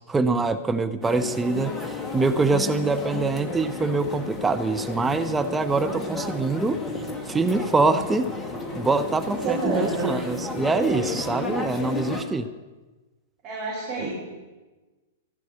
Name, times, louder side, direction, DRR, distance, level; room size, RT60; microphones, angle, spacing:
voice 1, 0.1-6.8 7.3-8.3 8.7-12.5, right 3 dB, 10° right, 7 dB, 0.8 m, -24 dB
sound 1, 1.0-12.2, left 3 dB, 15° left, 1.9 m, -32 dB
voice 2, 9.2-10.1 13.4-14.1, right 3 dB, 35° right, -4 dB, 4.8 m, -28 dB
15.5 x 11.5 x 6.8 m, 1.2 s
figure-of-eight pair, 105°, 0 cm